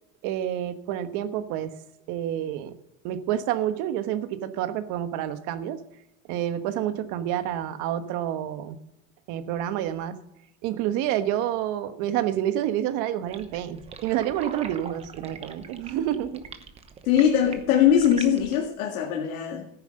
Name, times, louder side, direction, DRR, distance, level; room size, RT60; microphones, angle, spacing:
voice 1, 0.2-1.7 2.1-2.7 3.0-5.8 6.3-8.8 9.3-10.1 10.6-16.4, right 11 dB, 45° right, 9 dB, 1.3 m, -28 dB
sound 1, 13.3-18.7, right 5 dB, 15° right, 0.9 m, -43 dB
voice 2, 17.0-19.7, left 9 dB, 80° left, 1 dB, 2.2 m, -21 dB
14.0 x 9.7 x 6.5 m, 0.88 s
supercardioid pair, 150°, 41 cm